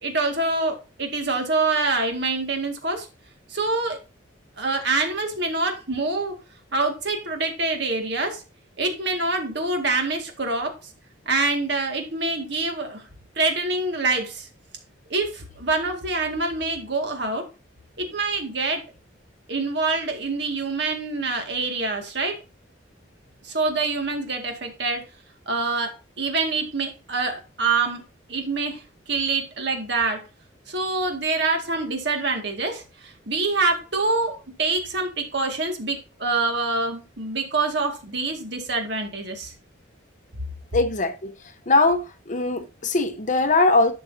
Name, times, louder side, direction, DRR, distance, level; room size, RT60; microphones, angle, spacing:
voice 1, 0.0-3.1 3.5-4.0 4.6-6.3 6.7-8.4 8.8-10.7 11.3-13.0 13.4-14.5 15.1-17.4 18.0-18.8 19.5-22.4 23.4-25.0 25.5-28.0 28.3-28.8 29.1-30.2 30.7-39.5, right 3 dB, 60° right, 1.9 m, -25 dB
voice 2, 40.7-41.3 41.7-43.9, left 2 dB, 40° left, 0.9 m, -21 dB
11.5 x 6.1 x 2.7 m
head